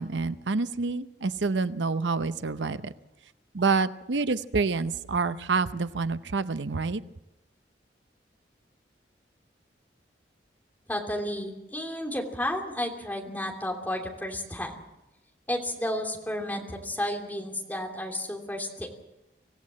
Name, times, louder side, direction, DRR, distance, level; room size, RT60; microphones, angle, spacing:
voice 1, 0.0-2.9 3.5-7.0, right 4 dB, 80° right, 12 dB, 0.7 m, -27 dB
voice 2, 10.9-14.7 15.5-18.9, left 1 dB, 10° left, 1 dB, 3.0 m, -32 dB
25.5 x 16.5 x 7.5 m, 0.95 s
head